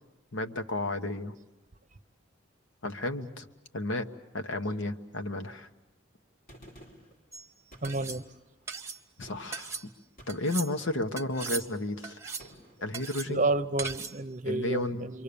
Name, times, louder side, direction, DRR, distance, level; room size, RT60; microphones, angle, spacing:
voice 1, 0.3-1.3 2.8-3.4 3.7-4.1 4.3-5.7 9.2-9.8 10.3-12.2 12.8-13.5 14.4-15.1, left 2 dB, 80° left, 7 dB, 1.3 m, -32 dB
Gunshot gunfire, 6.5-7.2 7.7-8.4 9.2-9.6 10.2-10.6 11.4-11.9 12.4-12.8, equal, 50° left, 5.0 m, -52 dB
sound 1, 7.3-7.5 7.8-8.2 8.7-9.0 9.5-9.9 10.3-10.7 11.2-11.7 12.0-12.5 12.9-13.3 13.8-14.2, right 5 dB, 15° right, 1.2 m, -38 dB
voice 2, 7.8-8.2 13.3-15.2, right 2 dB, 40° right, 10 dB, 0.8 m, -30 dB
28.5 x 23.5 x 7.0 m, 1.0 s
head